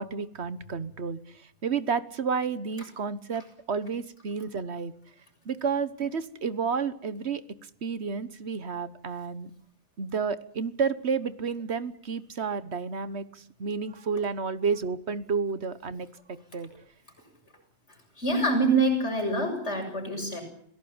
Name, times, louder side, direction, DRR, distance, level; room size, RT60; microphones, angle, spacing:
voice 1, 0.0-4.9 5.4-9.5 10.0-16.8, right 5 dB, 70° right, 14 dB, 1.5 m, -31 dB
voice 2, 17.9-20.4, right 2 dB, 80° left, 3 dB, 7.5 m, -26 dB
26.5 x 17.5 x 8.8 m, 0.65 s
omnidirectional pair, 1.2 m